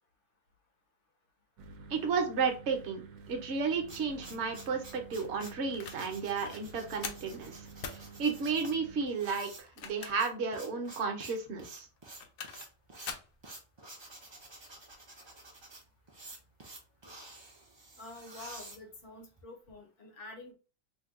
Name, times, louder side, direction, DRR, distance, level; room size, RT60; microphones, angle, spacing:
sound 1, 1.6-9.1, right 5 dB, 85° right, 1.1 m, -51 dB
voice 1, 1.9-11.9, right 5 dB, 60° right, 3 dB, 1.0 m, -33 dB
sound 2, 3.5-19.4, right 2 dB, 35° right, 0.4 m, -51 dB
sound 3, 5.4-6.0 6.4-6.6 7.0-7.3 7.8-8.0 9.6-10.4 10.8-10.9 12.0-12.7 13.1-13.3, left 6 dB, 85° left, 1.0 m, -42 dB
voice 2, 18.0-20.5, left 2 dB, 65° left, 2 dB, 1.2 m, -48 dB
2.9 x 2.2 x 3.5 m, 0.33 s
omnidirectional pair, 1.4 m